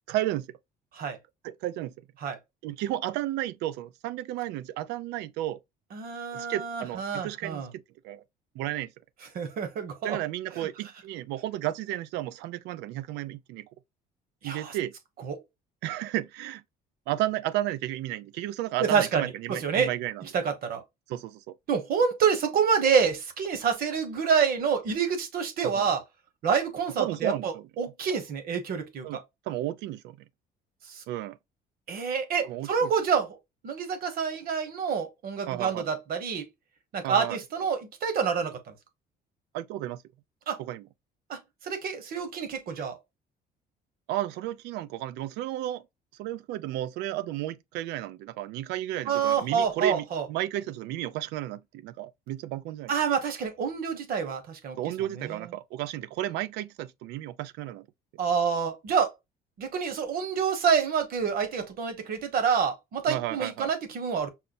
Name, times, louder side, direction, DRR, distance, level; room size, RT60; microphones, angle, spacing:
voice 1, 0.1-0.5 1.4-2.0 2.6-5.6 6.3-8.2 8.5-8.9 10.0-13.7 14.4-14.9 15.8-16.6 17.1-20.2 21.1-21.6 25.6-25.9 27.0-27.6 29.0-29.2 29.5-30.2 31.1-31.4 32.4-32.9 35.5-35.8 37.0-37.4 39.5-40.0 40.6-40.9 44.1-45.8 46.2-52.9 54.8-57.9 63.1-63.7, right 14 dB, 90° right, 0.4 m, -33 dB
voice 2, 5.9-7.7 9.3-10.2 10.6-10.7 14.4-14.7 15.3-15.4 18.8-19.9 20.3-20.8 21.7-26.0 26.4-29.2 30.9-31.0 31.9-33.4 33.6-36.5 36.9-38.7 40.5-40.6 41.3-43.0 49.1-50.2 52.9-54.8 55.2-55.3 58.2-59.1 59.6-64.3, right 6 dB, 60° right, 1.1 m, -27 dB
5.6 x 2.1 x 2.4 m
cardioid pair, 110°, 17 cm